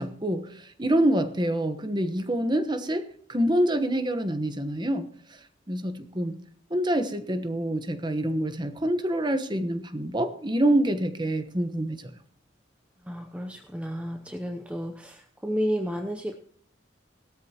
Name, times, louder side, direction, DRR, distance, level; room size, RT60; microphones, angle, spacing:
voice 1, 0.0-5.1 5.7-6.4 6.7-12.1, right 1 dB, 25° right, 9 dB, 1.1 m, -26 dB
voice 2, 13.0-16.4, equal, 5° right, 4 dB, 0.7 m, -32 dB
17.5 x 13.0 x 2.9 m, 0.62 s
head